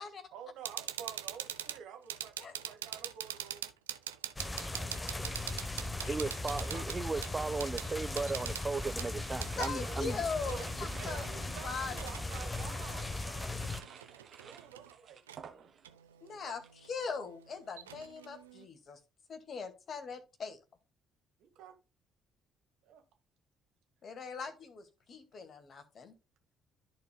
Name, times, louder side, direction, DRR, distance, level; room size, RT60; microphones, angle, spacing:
voice 1, 0.3-3.6 4.6-5.2 6.7-6.9 9.7-10.0 10.4-10.6 11.0-13.6 14.1-15.2 15.5-15.7 16.3-16.6 21.4-21.8 22.8-23.0 24.4-24.5, right 8 dB, 65° right, 1.6 m, -50 dB
sound 1, 0.7-9.7 10.4-12.2 13.1-13.2 13.6-14.9 15.3-15.4 15.8-18.7, right 11 dB, 80° right, 0.5 m, -44 dB
sound 2, 4.4-13.8, left 2 dB, 20° left, 0.9 m, -38 dB
voice 2, 4.7-5.1 5.3-6.2 9.6-11.9 16.2-19.0 19.3-20.6 24.0-26.1, left 5 dB, 50° left, 1.9 m, -41 dB
voice 3, 6.1-10.2, right 4 dB, 30° right, 0.3 m, -36 dB
sound 3, 8.6-16.0 16.3-16.8, right 7 dB, 50° right, 1.5 m, -53 dB
13.5 x 4.6 x 2.2 m
figure-of-eight pair, 45°, 0 cm